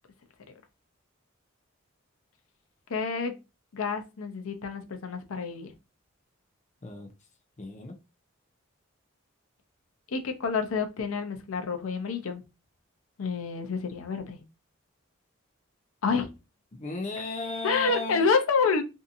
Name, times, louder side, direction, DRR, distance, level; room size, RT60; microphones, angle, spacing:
voice 1, 2.9-3.3 3.7-5.7 10.1-12.4 13.2-14.4 16.0-16.3 17.1-17.2 17.6-18.8, left 5 dB, 85° left, 0.5 m, -28 dB
voice 2, 6.8-7.1 7.6-7.9 16.7-18.3, left 2 dB, 35° left, 0.4 m, -35 dB
2.7 x 2.5 x 2.4 m
head